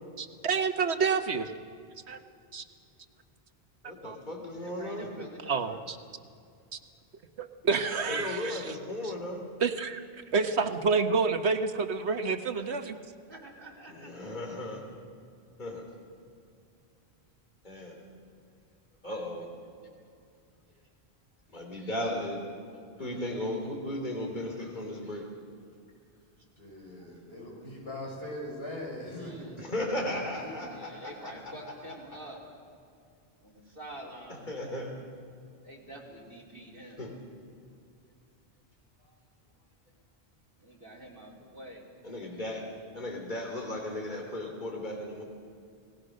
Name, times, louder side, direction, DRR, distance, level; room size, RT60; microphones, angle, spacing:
voice 1, 0.2-1.5 2.1-2.2 2.5-2.6 3.8-4.2 5.4-6.0 6.7-6.8 7.4-8.8 9.0-9.1 9.6-10.0 10.3-13.0, right 5 dB, 90° right, 8 dB, 1.5 m, -29 dB
voice 2, 3.8-5.1 8.1-9.4 13.9-14.8 15.6-15.8 17.6-18.0 19.0-19.5 21.5-22.4 22.7-25.2 29.6-31.5 34.3-34.9 37.0-37.1 42.0-42.6 42.9-45.2, left 1 dB, 45° left, 1 dB, 3.3 m, -36 dB
voice 3, 4.6-5.9 12.5-13.0 13.3-14.3 26.9-27.1 29.2-29.6 30.7-32.4 33.4-34.5 35.6-37.0 40.6-41.8, right 1 dB, 55° right, -2 dB, 4.3 m, -47 dB
voice 4, 26.6-29.7 30.4-30.7, left 1 dB, 70° left, -2 dB, 6.7 m, -41 dB
29.5 x 18.5 x 6.5 m, 2.4 s
omnidirectional pair, 1.1 m